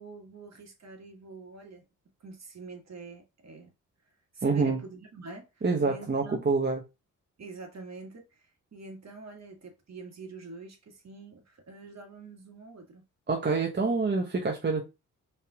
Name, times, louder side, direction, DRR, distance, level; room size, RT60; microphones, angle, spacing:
voice 1, 0.0-1.9 2.2-3.7 4.3-6.5 7.4-13.0, right 3 dB, 50° right, 1.8 m, -46 dB
voice 2, 4.4-4.8 5.6-6.8 13.3-14.9, right 4 dB, 30° right, 1.0 m, -26 dB
5.5 x 3.5 x 2.3 m
supercardioid pair, 60°, 34 cm